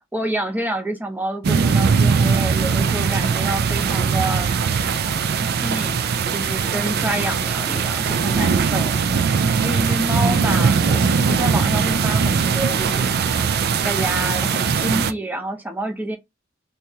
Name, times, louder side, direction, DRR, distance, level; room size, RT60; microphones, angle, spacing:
voice 1, 0.1-4.5 5.3-5.9 6.3-9.0 9.6-13.1 13.8-16.2, right 1 dB, 10° right, 0.7 m, -28 dB
sound 1, 1.4-15.1, right 5 dB, 50° right, 0.4 m, -20 dB
2.9 x 2.7 x 3.4 m
head